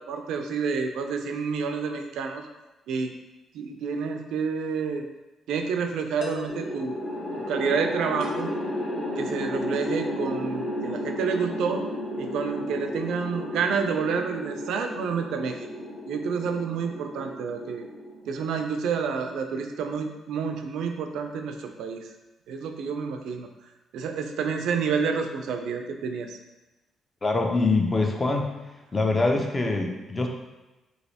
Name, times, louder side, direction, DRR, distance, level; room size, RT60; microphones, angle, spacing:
voice 1, 0.1-2.5 2.9-3.1 3.5-5.1 5.5-7.0 7.5-8.5 9.2-11.8 12.2-15.6 16.1-17.9 18.3-22.1 22.5-23.5 23.9-26.4, right 5 dB, 80° right, 5 dB, 0.3 m, -29 dB
sound 1, 4.6-4.8 6.2-6.6 8.2-8.6, left 2 dB, 70° left, 0.6 m, -39 dB
sound 2, 6.5-18.8, left 1 dB, 45° left, 0.8 m, -33 dB
voice 2, 27.2-28.5 28.9-30.3, left 3 dB, 25° left, 2 dB, 0.4 m, -24 dB
3.1 x 2.8 x 2.7 m, 1.1 s
cardioid pair, 90°, 0 cm